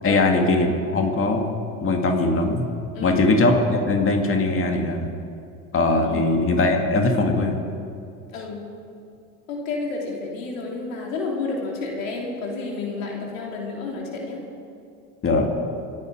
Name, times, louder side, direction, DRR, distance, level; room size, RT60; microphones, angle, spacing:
voice 1, 0.0-1.5 1.8-2.7 3.0-5.1 5.7-7.6 15.2-15.5, left 2 dB, 35° left, 2 dB, 2.3 m, -20 dB
voice 2, 2.9-3.3 6.0-6.3 8.3-8.6 9.5-14.4, left 3 dB, 85° left, -1 dB, 3.2 m, -30 dB
26.5 x 10.0 x 4.9 m, 2.5 s
supercardioid pair, 85°, 39 cm